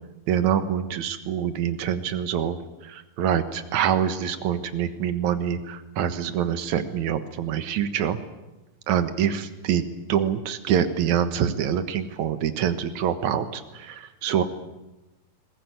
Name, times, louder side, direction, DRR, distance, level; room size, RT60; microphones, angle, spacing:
voice 1, 0.3-8.2 8.9-9.8 10.1-14.4, right 9 dB, 75° right, 10 dB, 2.7 m, -25 dB
21.0 x 20.5 x 9.3 m, 1.0 s
omnidirectional pair, 3.4 m